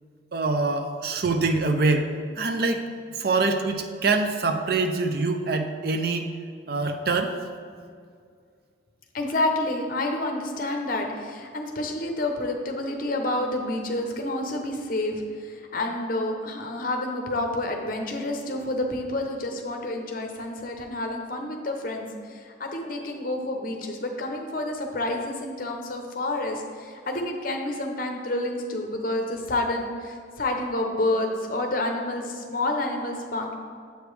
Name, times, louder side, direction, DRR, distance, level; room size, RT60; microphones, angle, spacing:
voice 1, 0.3-2.1 2.4-2.8 3.2-6.3 6.7-7.3, right 3 dB, 50° right, 6 dB, 0.5 m, -24 dB
voice 2, 9.1-33.5, left 1 dB, 45° left, 3 dB, 0.7 m, -29 dB
7.8 x 5.0 x 3.2 m, 2.2 s
head